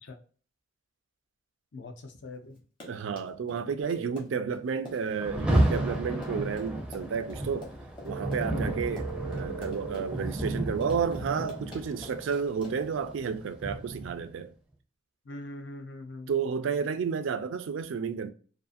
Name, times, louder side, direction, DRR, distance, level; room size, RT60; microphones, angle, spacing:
voice 1, 1.7-2.6 15.3-16.3, left 2 dB, 60° left, 0.5 m, -42 dB
Run, 2.6-13.0, left 2 dB, 25° left, 0.8 m, -48 dB
voice 2, 2.8-7.7 8.0-14.5 16.3-18.3, right 6 dB, 75° right, 0.3 m, -31 dB
sound 1, 3.8-4.1 8.1-10.1, right 7 dB, 80° left, 0.9 m, -39 dB
Rain, 5.2-14.3, right 1 dB, 5° right, 0.4 m, -32 dB
2.5 x 2.4 x 2.4 m
head